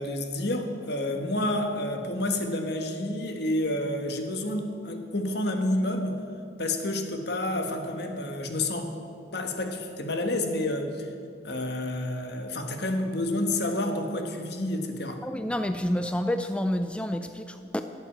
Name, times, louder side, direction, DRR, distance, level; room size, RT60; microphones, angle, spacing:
voice 1, 0.0-6.2 6.6-8.9 9.3-11.1 11.4-15.2, left 1 dB, 65° left, 5 dB, 1.4 m, -29 dB
voice 2, 15.2-17.8, left 1 dB, 5° left, 8 dB, 0.4 m, -29 dB
12.0 x 8.2 x 9.0 m, 2.3 s
head